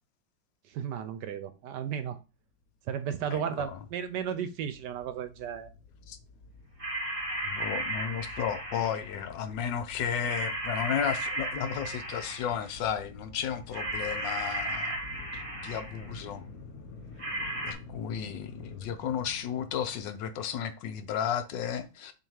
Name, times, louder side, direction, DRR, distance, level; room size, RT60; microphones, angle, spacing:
voice 1, 0.7-2.2 2.9-5.7, right 8 dB, 70° right, 1.1 m, -34 dB
sound 1, 2.7-2.8 3.0-3.1 3.4-20.0, left 3 dB, 55° left, 1.3 m, -49 dB
voice 2, 3.3-3.8 6.1-6.2 7.4-15.0 15.3-16.4 17.6-22.1, left 8 dB, 75° left, 1.4 m, -33 dB
sound 2, 6.8-9.2 10.3-12.7 13.7-16.2 17.2-17.7, right 1 dB, 25° right, 0.8 m, -35 dB
7.3 x 2.9 x 4.7 m
omnidirectional pair, 2.1 m